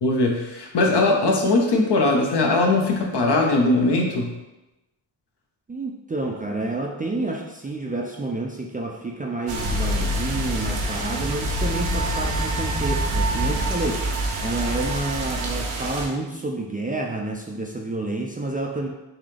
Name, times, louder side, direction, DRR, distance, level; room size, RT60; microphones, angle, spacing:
voice 1, 0.0-4.3, left 2 dB, 55° left, 1 dB, 0.9 m, -20 dB
voice 2, 5.7-14.1 14.4-18.9, right 2 dB, 20° right, 0 dB, 0.4 m, -29 dB
sound 1, 9.5-16.1, right 1 dB, 85° right, 0.8 m, -26 dB
3.8 x 2.8 x 3.3 m, 0.99 s
cardioid pair, 60°, 47 cm